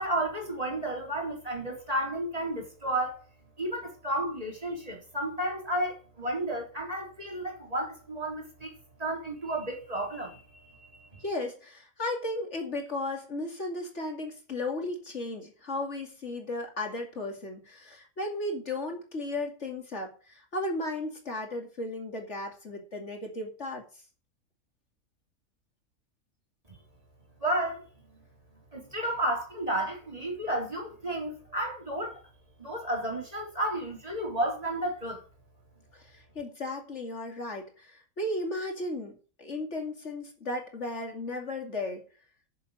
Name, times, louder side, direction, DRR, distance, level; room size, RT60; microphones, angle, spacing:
voice 1, 0.0-3.2 3.6-8.7 9.0-11.2 27.4-27.8 28.7-32.2 32.6-35.2, right 1 dB, 25° right, 3.9 m, -32 dB
voice 2, 11.2-23.8 36.1-42.0, left 2 dB, 50° left, 2.9 m, -35 dB
10.5 x 7.2 x 7.7 m
omnidirectional pair, 1.5 m